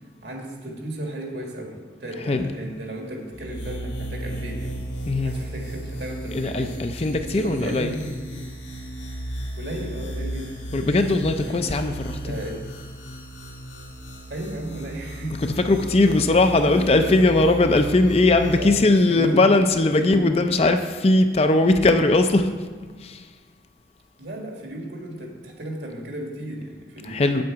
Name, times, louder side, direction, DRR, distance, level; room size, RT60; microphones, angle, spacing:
voice 1, 0.2-4.7 5.2-8.4 9.6-10.6 11.4-11.6 12.2-12.6 14.3-16.4 16.6-17.2 18.5-19.5 20.0-20.7 24.2-27.4, right 1 dB, 70° right, 0 dB, 1.8 m, -34 dB
sound 1, 3.3-18.7, right 1 dB, 80° left, 2.3 m, -35 dB
voice 2, 6.3-7.9 10.7-12.4 15.7-22.5 23.0-23.2 27.0-27.4, left 2 dB, 35° left, 7 dB, 0.4 m, -19 dB
8.1 x 7.7 x 4.7 m, 1.4 s
head